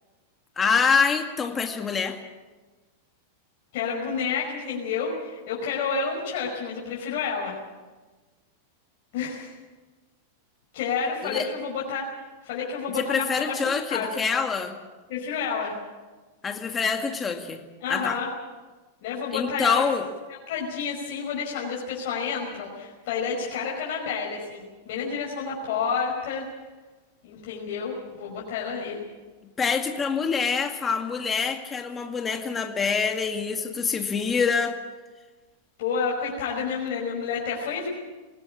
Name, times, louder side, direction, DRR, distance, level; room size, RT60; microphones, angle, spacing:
voice 1, 0.6-2.2 11.2-11.5 13.0-14.7 16.4-17.6 17.9-18.2 19.3-20.1 29.6-34.8, left 5 dB, 20° left, 5 dB, 2.2 m, -25 dB
voice 2, 3.7-7.6 9.1-9.6 10.7-12.1 12.4-13.6 13.9-14.2 15.1-15.8 17.8-18.3 19.0-19.8 20.5-26.5 27.2-29.0 35.8-37.9, left 5 dB, 60° left, -3 dB, 5.4 m, -30 dB
21.0 x 17.5 x 8.7 m, 1.3 s
hypercardioid pair, 110°, 0 cm